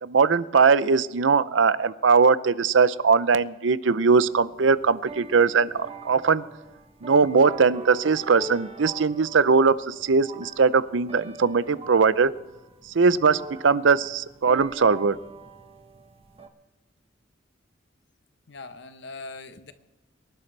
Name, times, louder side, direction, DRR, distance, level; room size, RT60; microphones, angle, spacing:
voice 1, 0.0-6.4 7.0-12.3 12.8-15.2, right 5 dB, 75° right, 16 dB, 0.6 m, -20 dB
sound 1, 3.9-16.5, right 3 dB, 30° right, 1.0 m, -43 dB
voice 2, 18.5-19.7, left 3 dB, 65° left, 10 dB, 1.0 m, -41 dB
25.0 x 11.5 x 3.3 m, 1.1 s
head